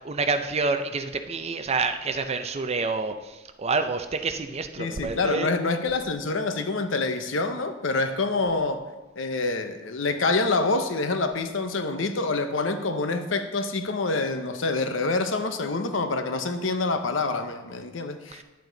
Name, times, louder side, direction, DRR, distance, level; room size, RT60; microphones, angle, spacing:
voice 1, 0.0-5.5 18.3-18.4, right 4 dB, 35° right, 8 dB, 0.6 m, -28 dB
voice 2, 4.8-8.8 9.2-18.4, left 3 dB, 80° left, 8 dB, 0.9 m, -26 dB
10.5 x 8.5 x 4.0 m, 1.1 s
head